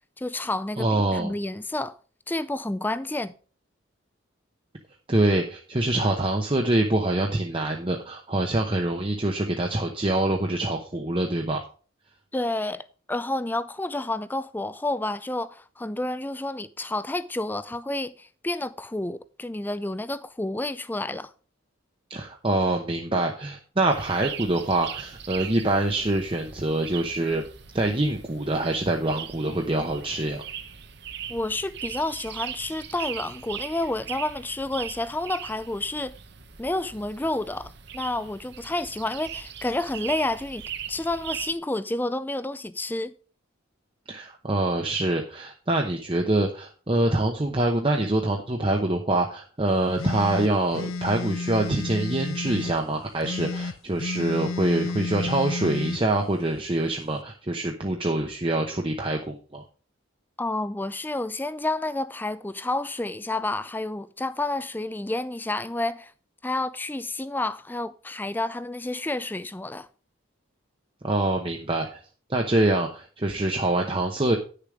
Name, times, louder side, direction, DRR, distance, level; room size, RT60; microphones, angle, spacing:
voice 1, 0.2-2.0 2.3-3.3 12.3-21.3 31.3-36.2 36.6-43.1 60.4-66.1 66.4-69.9, left 2 dB, 10° left, 0.4 m, -30 dB
voice 2, 0.8-1.3 5.1-11.6 22.1-27.4 27.7-30.4 44.1-59.6 71.0-72.0 72.3-74.4, right 2 dB, 25° right, 0.8 m, -25 dB
sound 1, 23.9-41.5, right 8 dB, 55° right, 0.9 m, -40 dB
sound 2, 50.0-52.8 53.2-56.0, left 3 dB, 85° left, 0.6 m, -31 dB
10.0 x 6.8 x 4.9 m
head